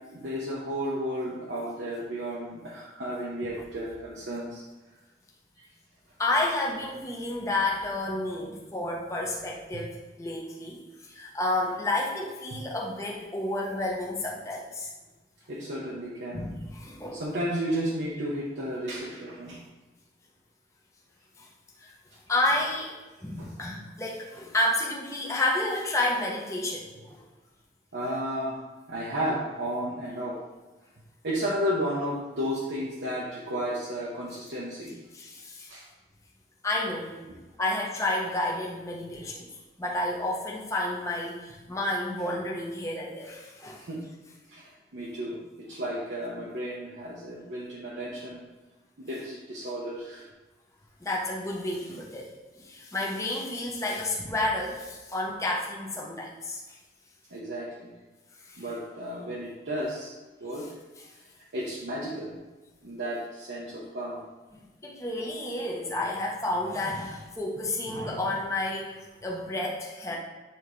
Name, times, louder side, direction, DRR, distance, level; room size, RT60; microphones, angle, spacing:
voice 1, 0.1-4.6 12.5-12.6 15.5-16.4 17.1-19.6 23.4-23.5 27.9-28.6 28.9-30.4 31.2-34.9 35.7-35.9 43.8-44.0 44.5-48.5 49.0-50.2 57.3-57.9 58.6-60.1 60.4-60.7 61.5-62.3 62.8-64.2 67.9-68.0, equal, 75° right, -6 dB, 0.9 m, -33 dB
voice 2, 6.2-14.9 16.3-17.2 21.4-21.5 21.8-21.9 22.3-22.9 23.2-27.2 35.1-35.7 36.6-37.2 37.6-39.5 39.8-43.9 51.0-52.3 52.6-56.8 58.4-58.6 64.5-70.2, left 1 dB, 15° left, -3 dB, 0.9 m, -30 dB
8.4 x 3.5 x 3.2 m, 1.2 s
head